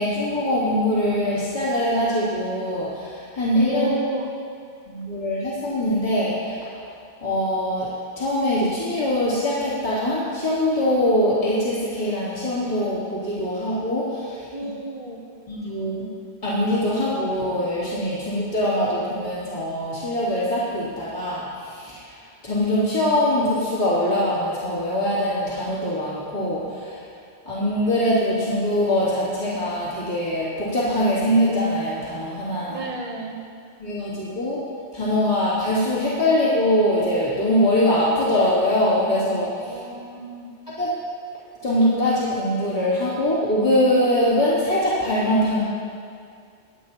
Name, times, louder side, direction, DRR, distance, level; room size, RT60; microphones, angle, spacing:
voice 1, 0.0-3.9 4.9-6.9 7.2-7.9 8.2-14.5 15.5-16.1 16.4-27.0 27.4-32.8 33.8-34.6 34.9-39.8 40.8-40.9 41.6-45.6, left 1 dB, 30° left, -11 dB, 3.1 m, -23 dB
voice 2, 3.7-4.3 14.5-15.2 32.7-33.4 39.6-40.5, right 2 dB, 35° right, 0 dB, 1.0 m, -31 dB
24.0 x 9.1 x 3.0 m, 2.3 s
omnidirectional pair, 1.1 m